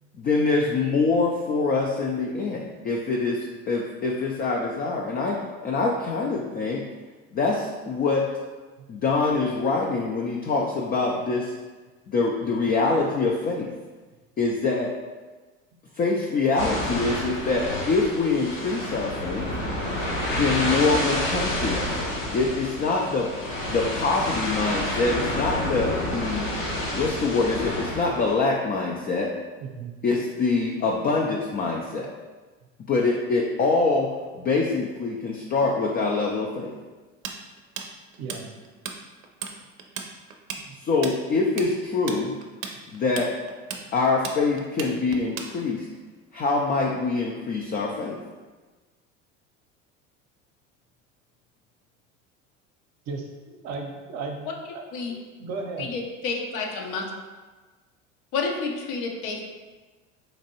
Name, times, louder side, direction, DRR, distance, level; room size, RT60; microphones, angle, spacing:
voice 1, 0.2-6.8 7.3-8.3 8.9-11.5 12.1-13.7 14.4-14.9 16.0-19.5 20.3-22.0 22.3-23.3 23.7-26.4 26.9-29.3 30.0-32.1 32.9-36.7 40.8-42.3 42.9-43.3 43.9-45.9 46.3-48.2, left 3 dB, 25° left, -1 dB, 0.4 m, -25 dB
sound 1, 16.6-28.3, left 1 dB, 85° left, 1.4 m, -29 dB
voice 2, 29.6-30.0 38.2-38.5 40.6-40.7 53.1-55.9, right 4 dB, 45° right, 2 dB, 0.7 m, -36 dB
Tools, 37.2-39.0 39.2-39.5 39.8-45.9, right 6 dB, 85° right, 0.5 m, -35 dB
voice 3, 55.8-57.0 58.3-59.5, left 4 dB, 60° left, 1 dB, 0.8 m, -29 dB
4.1 x 2.5 x 2.8 m, 1.3 s
hypercardioid pair, 75°, 38 cm